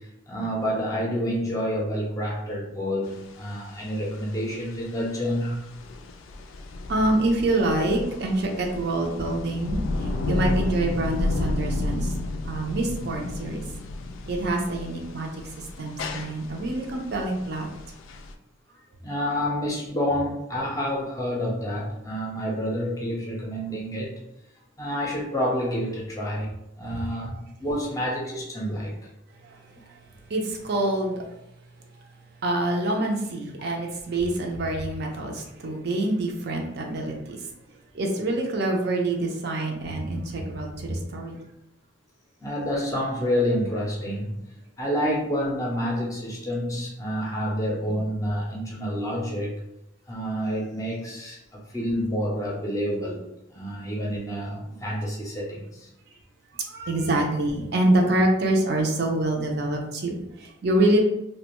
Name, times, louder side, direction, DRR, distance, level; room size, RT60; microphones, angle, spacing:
voice 1, 0.3-5.6 19.0-24.1 24.8-26.5 26.8-28.9 42.4-44.4 44.8-49.6 50.1-53.2 53.5-55.9, equal, 15° left, -3 dB, 0.5 m, -28 dB
sound 1, 3.1-18.3, left 2 dB, 85° left, 0.3 m, -32 dB
voice 2, 6.9-12.1 12.5-13.6 14.3-17.7 29.4-30.0 30.3-31.3 32.0-32.1 32.4-37.5 37.9-41.4 56.6-61.0, right 1 dB, 55° right, 1 dB, 0.5 m, -26 dB
2.4 x 2.2 x 2.9 m, 0.84 s
head